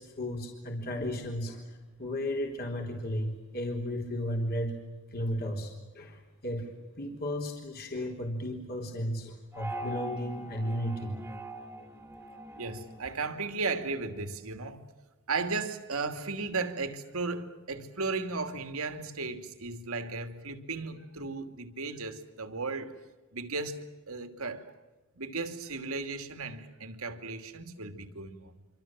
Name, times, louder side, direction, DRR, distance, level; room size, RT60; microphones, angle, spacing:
voice 1, 0.0-4.7 5.1-11.2, equal, 45° left, 3.8 m, -34 dB
sound 1, 9.5-14.1, right 1 dB, 10° right, 2.3 m, -43 dB
voice 2, 12.6-14.8 15.3-22.9 23.3-23.8 24.1-24.6 25.1-28.6, right 3 dB, 75° right, 2.7 m, -35 dB
27.0 x 25.5 x 7.6 m
head